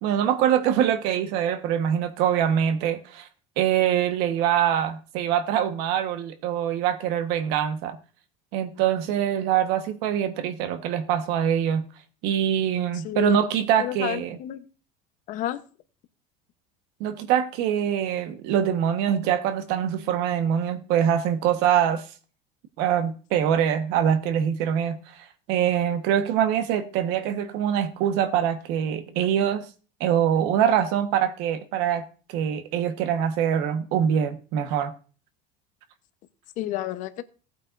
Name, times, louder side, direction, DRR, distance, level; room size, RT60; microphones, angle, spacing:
voice 1, 0.0-3.3 3.6-8.0 8.5-11.8 12.2-14.4 17.0-22.0 22.8-25.0 25.5-29.7 30.0-34.9, right 9 dB, 60° right, 1.3 m, -24 dB
voice 2, 12.9-13.4 13.8-14.7 15.3-15.6 36.6-37.2, left 13 dB, 45° left, 0.9 m, -30 dB
17.5 x 8.6 x 2.6 m
cardioid pair, 170°, 19 cm